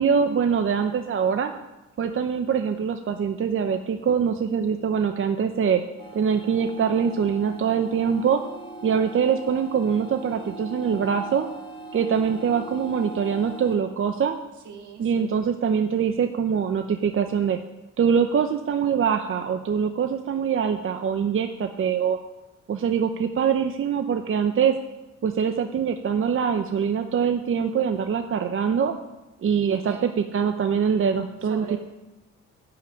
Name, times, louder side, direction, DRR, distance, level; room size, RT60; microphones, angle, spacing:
voice 1, 0.0-1.5 2.0-5.8 6.1-8.4 8.8-11.5 11.9-14.4 15.0-17.6 18.0-22.2 22.7-24.8 25.2-28.9 29.4-31.8, right 7 dB, 45° right, 7 dB, 0.8 m, -23 dB
sound 1, 6.0-13.8, right 3 dB, 15° left, 2.1 m, -40 dB
voice 2, 14.6-15.4 29.5-30.1 31.5-31.8, right 7 dB, 70° right, 3 dB, 2.2 m, -41 dB
10.5 x 5.8 x 8.7 m, 0.98 s
cardioid pair, 90°, 30 cm